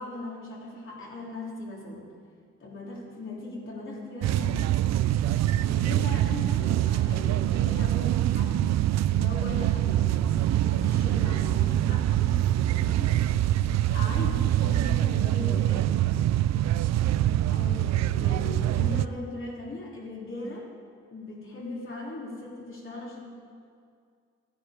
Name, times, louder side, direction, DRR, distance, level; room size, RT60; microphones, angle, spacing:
voice 1, 0.0-2.1 2.6-4.7 5.6-8.7 9.1-13.2 13.9-15.9 17.1-20.7 21.1-23.3, left 2 dB, 40° left, -4 dB, 3.2 m, -39 dB
sound 1, 4.2-19.1, right 13 dB, 60° right, 0.4 m, -24 dB
14.5 x 10.0 x 5.0 m, 2.2 s
cardioid pair, 90°, 30 cm